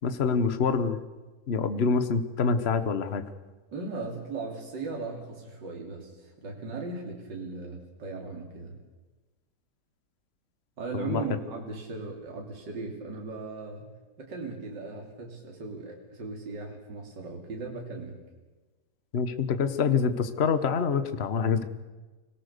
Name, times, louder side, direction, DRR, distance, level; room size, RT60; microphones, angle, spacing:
voice 1, 0.0-1.0 1.5-3.2 10.9-11.2 19.1-21.6, left 5 dB, 35° left, 10 dB, 1.2 m, -26 dB
voice 2, 3.7-8.8 10.8-18.2, right 3 dB, 60° right, 1 dB, 3.6 m, -38 dB
25.5 x 18.5 x 6.8 m, 1.2 s
omnidirectional pair, 2.2 m